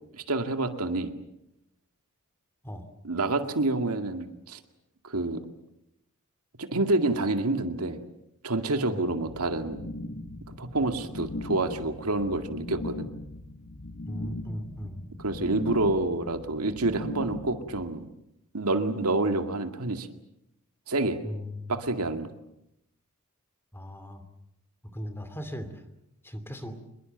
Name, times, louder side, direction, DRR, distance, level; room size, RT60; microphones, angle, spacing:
voice 1, 0.1-1.1 3.0-4.6 5.0-5.4 6.6-8.0 8.4-9.9 10.5-13.1 15.2-18.1 18.5-20.1 20.9-21.2 21.7-22.3, right 2 dB, 85° right, 7 dB, 2.1 m, -28 dB
sound 1, 9.3-17.8, left 2 dB, 60° left, 1.8 m, -39 dB
voice 2, 14.0-15.1 21.2-21.8 23.7-24.2 24.8-25.8 26.2-26.8, equal, 10° left, 10 dB, 2.7 m, -38 dB
26.0 x 22.0 x 8.0 m, 0.83 s
head